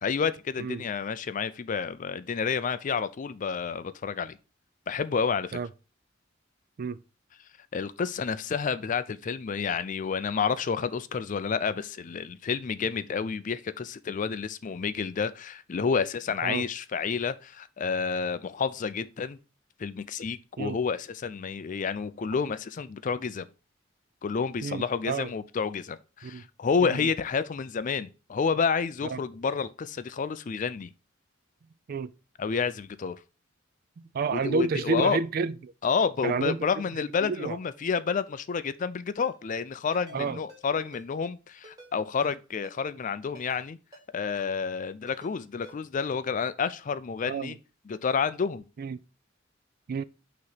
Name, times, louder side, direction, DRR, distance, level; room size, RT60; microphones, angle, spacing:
voice 1, 0.0-4.4 4.9-5.6 7.7-19.4 19.8-23.5 24.2-30.9 32.4-33.2 34.3-35.2 35.8-43.8 44.1-47.6 47.9-48.6, left 5 dB, 40° left, 0.4 m, -29 dB
voice 2, 24.6-25.3 26.2-26.4 26.8-27.1 29.1-29.2 31.9-32.1 34.0-35.7 36.2-36.6 37.2-37.6 40.1-40.4 47.2-47.5 48.8-49.0 49.9-50.0, right 4 dB, 50° right, 0.3 m, -30 dB
Ringtone, 39.2-39.3 39.9-40.2 40.5-40.6 40.9-41.1 41.6-41.9 42.2-42.3 42.6-42.8 43.3-43.6 43.9-44.1 44.3-44.5 45.1-45.3 45.6-45.8, equal, 20° right, 1.9 m, -50 dB
6.2 x 3.0 x 5.6 m
head